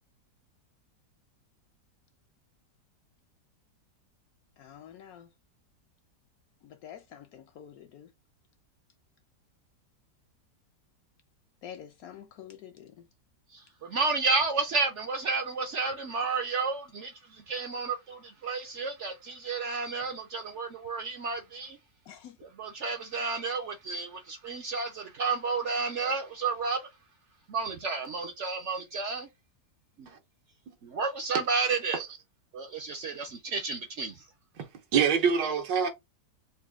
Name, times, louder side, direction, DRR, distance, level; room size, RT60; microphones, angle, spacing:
voice 1, 4.6-5.3 6.6-8.1 11.6-13.1 22.1-22.4, left 9 dB, 70° left, 0.9 m, -47 dB
voice 2, 13.5-21.8 22.6-26.9 27.5-29.3 30.0-30.1 30.8-32.0 32.5-34.2, right 4 dB, 65° right, 0.7 m, -31 dB
voice 3, 34.6-35.9, right 7 dB, 90° right, 1.6 m, -26 dB
4.2 x 2.2 x 3.5 m
omnidirectional pair, 1.9 m